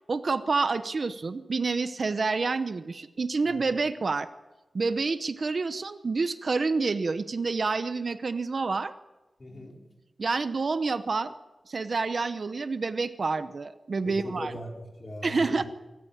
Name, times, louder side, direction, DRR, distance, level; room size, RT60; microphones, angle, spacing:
voice 1, 0.1-4.3 4.7-8.9 10.2-11.3 11.7-14.5 15.2-15.6, right 4 dB, 55° right, 11 dB, 0.9 m, -28 dB
voice 2, 9.4-9.8 14.0-15.6, left 1 dB, 40° left, 0 dB, 4.8 m, -39 dB
25.5 x 14.0 x 8.9 m, 1.1 s
wide cardioid pair, 130°, 0 cm